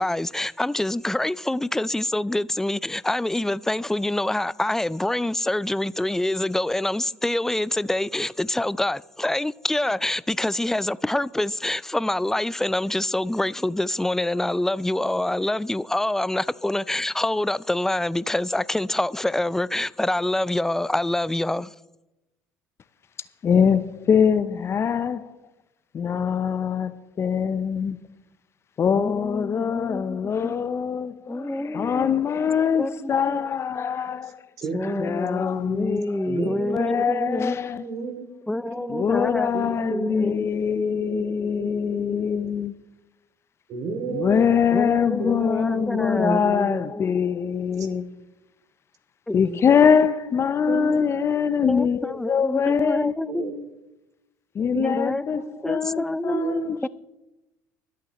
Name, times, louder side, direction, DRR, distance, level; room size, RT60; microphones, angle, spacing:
voice 1, 0.0-21.7 28.9-30.5 31.3-32.1 32.7-33.4 34.7-37.6 38.5-39.5 39.9-40.6 44.7-47.2 49.3-49.6 51.6-53.5 54.8-55.2 55.6-56.4 56.8-56.9, left 1 dB, 5° left, 0.4 m, -26 dB
voice 2, 23.4-25.4 25.9-28.0 28.8-34.4 35.0-37.9 38.9-42.7 44.1-48.2 49.3-53.1 54.5-56.9, left 7 dB, 40° left, 0.7 m, -23 dB
voice 3, 34.6-35.1 36.2-38.2 38.6-39.1 39.5-40.1 40.6-42.5 43.7-44.4 45.2-46.8 47.8-47.9 50.7-51.0 53.2-53.7 54.7-55.5 56.3-56.7, right 3 dB, 60° right, 2.5 m, -32 dB
24.0 x 8.5 x 3.1 m
hypercardioid pair, 70°, 7 cm